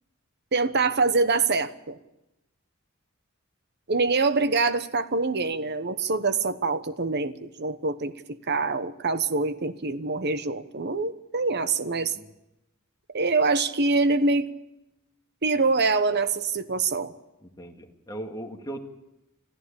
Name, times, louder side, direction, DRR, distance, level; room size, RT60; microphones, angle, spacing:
voice 1, 0.5-2.0 3.9-12.1 13.1-14.5 15.4-17.1, right 3 dB, 55° right, 12 dB, 1.1 m, -25 dB
voice 2, 17.4-18.8, right 1 dB, 20° left, 2 dB, 2.2 m, -38 dB
26.0 x 14.5 x 8.7 m, 0.94 s
head